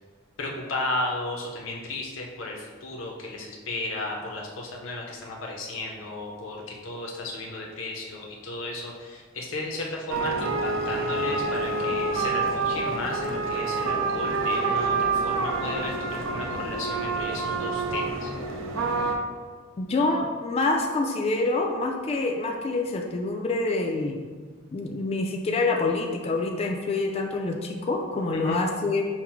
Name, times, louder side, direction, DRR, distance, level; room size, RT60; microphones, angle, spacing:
voice 1, 0.4-18.3 28.3-28.6, left 2 dB, 75° left, -1 dB, 0.6 m, -34 dB
sound 1, 10.1-19.2, right 3 dB, 80° right, 0.6 m, -27 dB
voice 2, 19.8-24.3 24.7-29.0, left 3 dB, 30° left, 2 dB, 0.3 m, -26 dB
5.7 x 2.0 x 4.4 m, 1.5 s
head